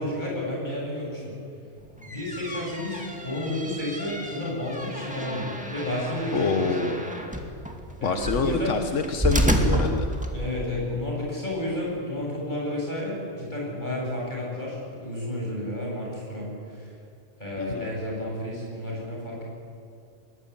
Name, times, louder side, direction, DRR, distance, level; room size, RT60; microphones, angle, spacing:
voice 1, 0.0-1.3 2.0-7.0 8.0-8.7 10.3-17.0 17.4-19.4, left 1 dB, 40° left, -3 dB, 8.3 m, -31 dB
sound 1, 1.8-10.7, equal, 5° right, 2.1 m, -30 dB
voice 2, 6.3-7.0 8.0-10.1 17.6-17.9, left 4 dB, 85° left, 6 dB, 1.5 m, -26 dB
21.5 x 20.5 x 8.7 m, 2.5 s
omnidirectional pair, 1.2 m